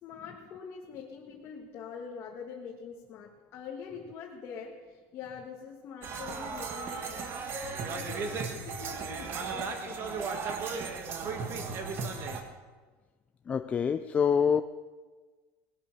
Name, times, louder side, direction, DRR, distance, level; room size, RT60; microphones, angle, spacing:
voice 1, 0.0-10.3 10.7-11.8, left 6 dB, 40° left, -1 dB, 1.7 m, -45 dB
sound 1, 6.0-12.4, right 5 dB, 35° right, 1.7 m, -35 dB
voice 2, 13.5-14.6, left 7 dB, 20° left, 10 dB, 0.4 m, -26 dB
19.5 x 11.0 x 6.6 m, 1.4 s
cardioid pair, 160°, 7 cm